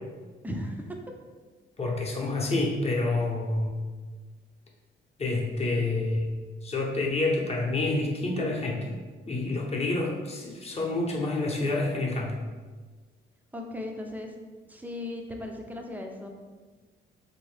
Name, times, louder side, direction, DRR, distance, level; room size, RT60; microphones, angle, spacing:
voice 1, 0.4-0.9 13.5-14.3 14.7-16.3, left 1 dB, 10° right, 2 dB, 0.5 m, -36 dB
voice 2, 1.8-3.7 5.2-6.3 6.6-8.9 9.3-12.4, left 2 dB, 30° left, -1 dB, 0.8 m, -28 dB
3.6 x 2.7 x 3.2 m, 1.4 s
cardioid pair, 90°, 20 cm